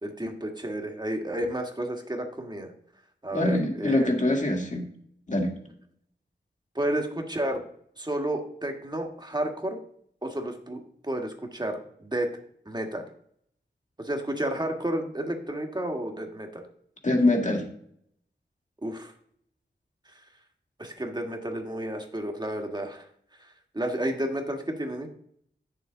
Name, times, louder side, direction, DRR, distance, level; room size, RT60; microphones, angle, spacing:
voice 1, 0.0-2.7 3.2-4.1 6.7-7.6 8.0-9.8 10.2-12.3 12.6-13.0 14.0-16.6 18.8-19.1 20.8-23.0 23.4-23.5 23.7-25.1, right 1 dB, 20° right, 3 dB, 1.7 m, -31 dB
voice 2, 3.3-4.9 5.3-5.5 17.0-17.7, left 1 dB, 40° left, 2 dB, 2.2 m, -24 dB
8.4 x 7.1 x 3.9 m, 0.66 s
cardioid pair, 55°, 19 cm